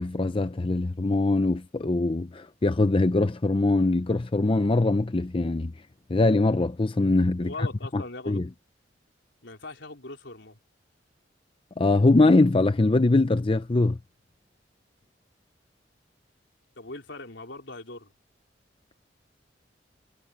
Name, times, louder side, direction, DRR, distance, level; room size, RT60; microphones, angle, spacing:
voice 1, 0.0-5.7 6.1-7.7 7.9-8.5 11.8-14.0, left 2 dB, 30° left, 0.6 m, -22 dB
voice 2, 7.4-8.4 9.4-10.6 16.8-18.1, left 2 dB, 75° left, 4.2 m, -40 dB
head